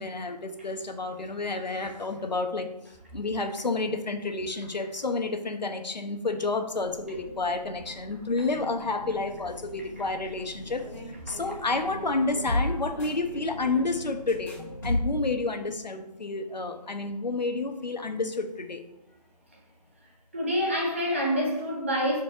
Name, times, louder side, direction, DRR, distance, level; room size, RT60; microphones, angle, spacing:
voice 1, 0.0-2.7 3.1-10.8 11.3-18.8, left 3 dB, 85° left, 1.1 m, -30 dB
sound 1, 6.7-15.3, left 1 dB, 30° left, 2.2 m, -36 dB
voice 2, 20.3-22.2, equal, 20° right, 1.0 m, -27 dB
5.3 x 4.5 x 5.6 m
figure-of-eight pair, 175°, 21 cm